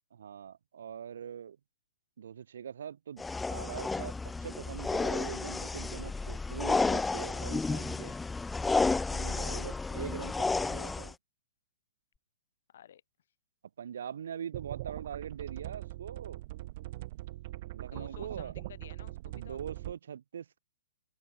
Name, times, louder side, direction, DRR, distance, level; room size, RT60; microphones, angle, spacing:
voice 1, 0.2-1.6 2.2-3.2 3.5-4.1 4.4-8.1 9.1-11.2 13.8-16.4 17.7-18.5 19.3-20.6, right 8 dB, 75° right, 2.2 m, -42 dB
sound 1, 3.2-11.1, left 3 dB, 5° left, 1.3 m, -32 dB
voice 2, 12.7-13.0 17.8-19.6, left 10 dB, 65° left, 7.0 m, -53 dB
sound 2, 14.5-19.9, right 18 dB, 45° right, 2.5 m, -42 dB
hypercardioid pair, 155°, 0 cm